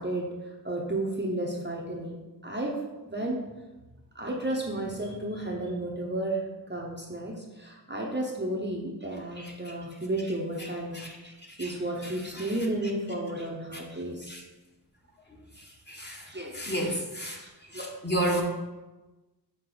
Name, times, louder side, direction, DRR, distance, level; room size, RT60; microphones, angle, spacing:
voice 1, 0.0-2.2 2.4-3.5 4.1-11.0 11.2-14.4 16.3-17.0 17.4-17.8, right 1 dB, 25° right, -2 dB, 0.8 m, -33 dB
voice 2, 15.9-16.2 16.5-17.4 17.7-18.4, right 1 dB, 25° left, -1 dB, 1.2 m, -30 dB
6.7 x 3.8 x 3.9 m, 1.1 s
wide cardioid pair, 70°, 41 cm